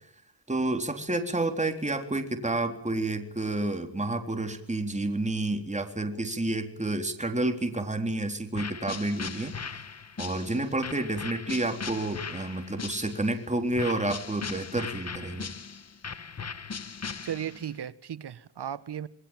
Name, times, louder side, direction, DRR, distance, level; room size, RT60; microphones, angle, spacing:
voice 1, 0.5-9.5 10.2-15.5, right 2 dB, 15° right, 3.8 m, -30 dB
sound 1, 8.5-13.4 13.8-17.7, left 5 dB, 35° left, 1.5 m, -38 dB
voice 2, 17.2-19.1, right 9 dB, 60° right, 1.4 m, -35 dB
27.0 x 22.0 x 7.5 m
cardioid pair, 75°, 44 cm